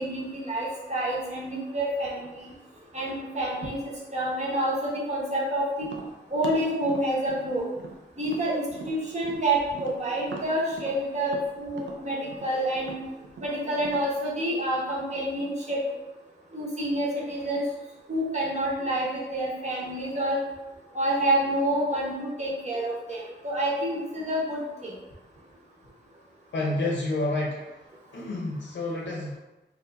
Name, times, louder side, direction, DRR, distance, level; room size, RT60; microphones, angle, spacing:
voice 1, 0.0-2.4 2.9-5.9 6.3-7.7 8.2-12.9 13.4-15.8 16.5-17.6 18.1-20.4 20.9-24.9, right 1 dB, 40° right, -5 dB, 0.9 m, -28 dB
Tap, 5.8-9.4 9.7-14.1, right 4 dB, 90° right, 0.4 m, -42 dB
voice 2, 26.5-27.6 28.1-29.4, left 2 dB, 85° left, -3 dB, 0.6 m, -29 dB
2.7 x 2.4 x 3.3 m, 1.0 s
wide cardioid pair, 125°, 19 cm